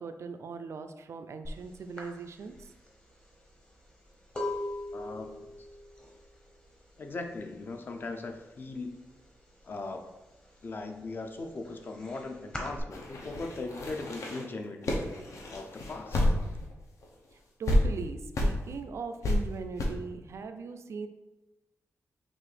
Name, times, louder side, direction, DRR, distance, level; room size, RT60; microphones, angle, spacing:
voice 1, 0.0-2.7 17.6-21.1, right 5 dB, 60° right, 8 dB, 0.3 m, -39 dB
sound 1, 1.5-1.6 2.0-7.7 7.9-8.4 8.7-9.8 10.2-12.8, left 1 dB, 15° left, 0.8 m, -40 dB
voice 2, 4.9-5.5 7.0-9.0 9.6-10.2 10.6-16.3, left 3 dB, 40° left, 5 dB, 0.4 m, -39 dB
sound 2, 12.9-16.7 17.0-17.1 17.7-17.8 18.3-18.5 19.2-19.4 19.8-19.9, left 1 dB, 80° left, 0.7 m, -29 dB
5.9 x 2.5 x 3.3 m, 1.0 s
wide cardioid pair, 160°, 5 cm